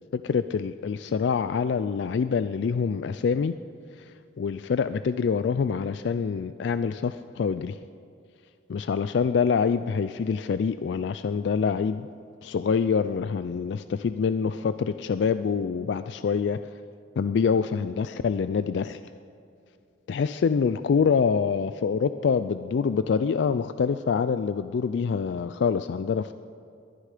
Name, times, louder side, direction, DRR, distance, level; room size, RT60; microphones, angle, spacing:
voice 1, 0.1-3.6 4.0-7.8 8.7-12.1 12.4-16.8 17.2-19.0 20.1-26.3, left 6 dB, 65° left, 12 dB, 0.3 m, -26 dB
22.0 x 10.0 x 5.0 m, 2.5 s
head